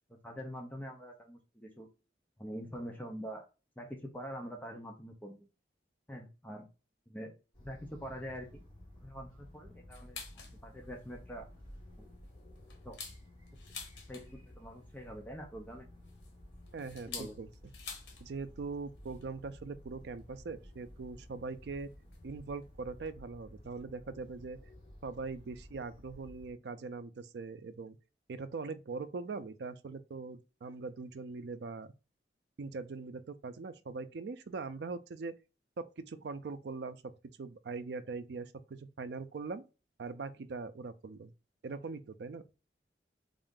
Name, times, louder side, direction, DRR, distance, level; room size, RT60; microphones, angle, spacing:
voice 1, 0.1-1.9 2.4-3.4 3.8-5.4 6.1-6.7 7.1-7.3 7.6-8.6 9.0-11.5 12.0-12.1 12.8-13.0 14.1-15.9 17.1-17.4, equal, 10° left, 0.5 m, -45 dB
sound 1, 7.5-26.5, left 1 dB, 25° left, 1.8 m, -54 dB
sound 2, 9.9-10.6 11.0-11.1 11.5-11.7 12.2-14.5 15.7-18.3 18.5-18.6 18.9-19.2 20.2-20.3 21.2-21.3 22.1-22.3 22.6-22.7 22.9-23.1, left 5 dB, 85° left, 1.0 m, -48 dB
voice 2, 16.7-17.5 18.2-21.9 22.2-24.6 25.0-28.0 28.3-31.9 32.6-35.3 35.8-37.1 37.4-39.6 40.0-41.3 41.6-42.5, right 4 dB, 65° right, 0.4 m, -41 dB
3.7 x 2.5 x 3.6 m
head